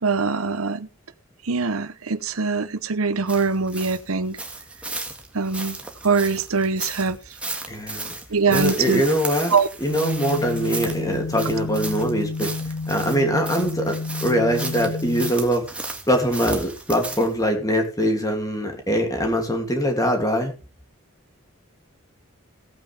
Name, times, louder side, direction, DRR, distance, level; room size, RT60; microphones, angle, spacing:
voice 1, 0.0-0.9 1.4-4.4 5.3-5.8 6.0-7.2 8.3-9.0 9.5-9.7, right 4 dB, 85° right, 0.9 m, -22 dB
sound 1, 3.3-17.4, right 2 dB, 5° right, 1.8 m, -35 dB
voice 2, 7.7-8.2 8.5-12.5 12.9-15.6 16.1-20.5, equal, 15° left, 2.8 m, -23 dB
sound 2, 9.9-15.3, left 3 dB, 85° left, 1.8 m, -30 dB
17.0 x 9.0 x 3.5 m
head